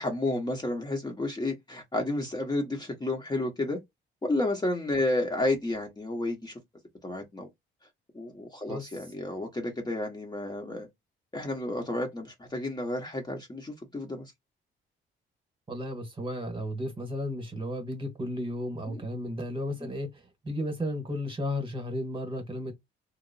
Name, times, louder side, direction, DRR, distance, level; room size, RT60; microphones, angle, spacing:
voice 1, 0.0-3.8 4.2-6.5 7.0-7.5 8.1-10.9 11.3-14.2 18.9-19.0 19.8-19.9, left 2 dB, 20° left, 0.9 m, -31 dB
voice 2, 15.7-22.7, left 1 dB, 25° right, 1.2 m, -34 dB
2.8 x 2.0 x 2.6 m
cardioid pair, 90°, 20 cm